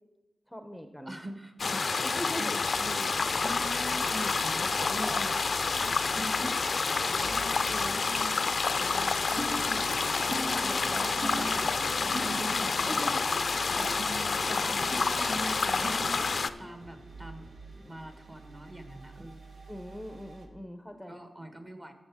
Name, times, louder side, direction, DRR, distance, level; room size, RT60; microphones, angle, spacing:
voice 1, 0.5-1.2 1.7-2.5 4.8-5.5 10.3-12.2 12.8-13.2 19.7-21.2, equal, 5° left, 6 dB, 0.8 m, -41 dB
voice 2, 1.0-2.0 2.4-5.3 5.7-13.0 13.8-16.2 16.6-17.5 17.7-19.5 21.1-21.9, right 1 dB, 25° right, 7 dB, 1.4 m, -42 dB
sound 1, 1.6-16.5, left 4 dB, 60° left, 0.4 m, -29 dB
sound 2, 2.6-20.5, right 4 dB, 75° right, 1.5 m, -50 dB
sound 3, 9.4-16.8, right 1 dB, 55° right, 1.5 m, -41 dB
13.0 x 7.0 x 3.6 m, 1.2 s
cardioid pair, 70°, 0 cm